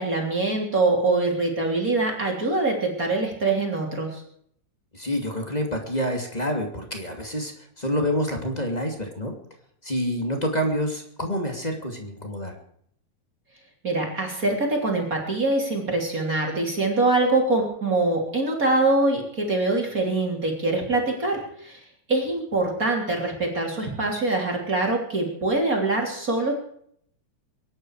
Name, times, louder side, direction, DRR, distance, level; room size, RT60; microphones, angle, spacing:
voice 1, 0.0-4.2 13.8-21.8 22.1-26.5, right 2 dB, 25° right, 0 dB, 3.3 m, -24 dB
voice 2, 4.9-9.3 9.8-12.5, equal, 15° left, 2 dB, 2.0 m, -27 dB
24.0 x 11.0 x 4.9 m, 0.66 s
omnidirectional pair, 4.3 m